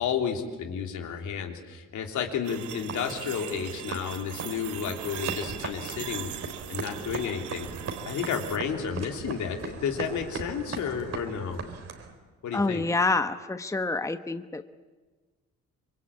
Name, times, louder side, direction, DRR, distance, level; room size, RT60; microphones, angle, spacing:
voice 1, 0.0-6.3 6.7-7.7 8.0-11.6 12.4-12.8, left 7 dB, 75° left, 3 dB, 3.2 m, -31 dB
sound 1, 2.4-8.6, right 11 dB, 75° right, 1.2 m, -40 dB
sound 2, 2.9-12.2, right 4 dB, 55° right, 3.8 m, -39 dB
voice 2, 12.5-14.6, left 3 dB, 10° left, 10 dB, 1.0 m, -27 dB
26.0 x 23.0 x 8.6 m, 1.3 s
cardioid pair, 90°, 30 cm